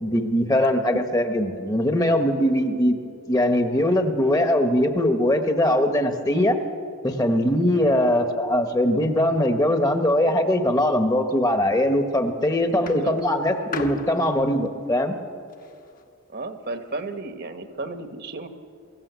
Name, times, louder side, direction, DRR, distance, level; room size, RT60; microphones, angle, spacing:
voice 1, 0.0-3.0 3.3-6.6 7.0-15.1, left 1 dB, 15° left, 6 dB, 1.2 m, -21 dB
sound 1, 11.8-12.2 12.8-16.1 16.9-17.0, left 3 dB, 40° left, 1.2 m, -38 dB
voice 2, 12.7-13.2 16.3-18.5, right 2 dB, 45° right, 7 dB, 1.3 m, -34 dB
24.0 x 14.5 x 8.2 m, 2.3 s
head